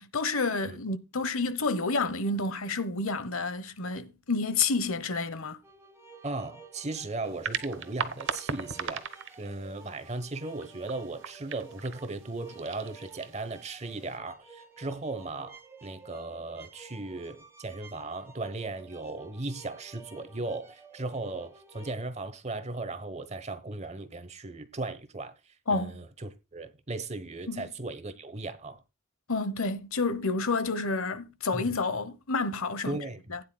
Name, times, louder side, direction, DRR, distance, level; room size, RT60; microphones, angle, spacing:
voice 1, 0.0-5.6 25.7-25.9 27.5-27.7 29.3-33.0 33.3-33.4, left 3 dB, 75° left, 1.0 m, -29 dB
sound 1, 5.6-21.9, right 4 dB, 10° right, 1.5 m, -52 dB
voice 2, 6.2-9.1 9.4-25.3 25.7-28.8 31.5-31.7 32.8-33.3, right 2 dB, 30° right, 1.0 m, -37 dB
sound 2, 7.2-14.2, right 6 dB, 60° right, 1.0 m, -39 dB
16.0 x 9.7 x 2.2 m
head